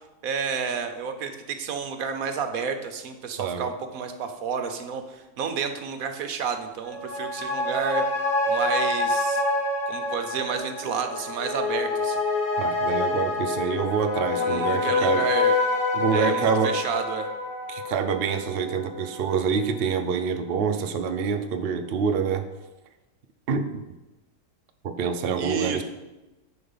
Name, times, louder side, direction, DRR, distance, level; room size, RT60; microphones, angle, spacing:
voice 1, 0.2-8.0 8.5-9.4 9.9-12.2 14.4-15.5 16.1-17.3 25.4-25.8, right 6 dB, 60° right, 7 dB, 1.1 m, -30 dB
voice 2, 3.4-3.7 12.6-15.2 15.9-16.8 17.7-22.5 23.5-23.9 24.8-25.8, right 6 dB, 90° right, 7 dB, 0.5 m, -26 dB
sound 1, 6.8-19.6 20.0-20.1, left 2 dB, 80° left, 2.9 m, -27 dB
10.5 x 4.8 x 5.5 m, 1.0 s
omnidirectional pair, 1.9 m